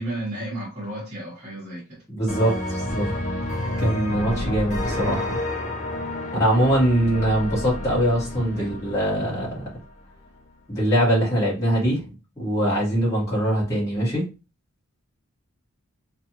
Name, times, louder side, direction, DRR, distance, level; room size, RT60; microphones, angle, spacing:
voice 1, 0.0-2.0 8.5-8.7, right 1 dB, 30° right, 1.1 m, -33 dB
voice 2, 2.1-3.1 3.8-5.4 6.3-9.7 10.7-12.0 12.4-14.3, equal, 15° left, 1.2 m, -22 dB
sound 1, 2.3-9.9, left 1 dB, 35° left, 0.7 m, -30 dB
2.5 x 2.4 x 2.9 m
head